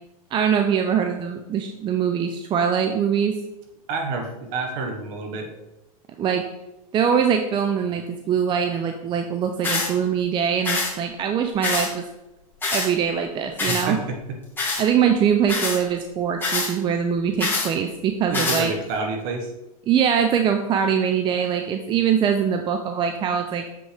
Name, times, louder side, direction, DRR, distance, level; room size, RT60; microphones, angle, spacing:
voice 1, 0.3-3.4 6.2-6.4 6.9-12.0 12.7-14.0 14.8-18.7 19.9-23.7, right 7 dB, 25° right, 6 dB, 0.5 m, -22 dB
voice 2, 3.9-5.5 13.7-14.2 18.3-19.5, right 3 dB, 50° right, 3 dB, 1.5 m, -28 dB
sound 1, 9.6-9.9 10.6-10.9 11.6-11.9 12.6-12.9 13.6-13.8 14.6-14.8 15.5-15.8 16.4-16.7 17.4-17.7 18.3-18.6, left 3 dB, 10° left, 2.0 m, -24 dB
7.1 x 5.4 x 3.4 m, 0.95 s
hypercardioid pair, 115°, 19 cm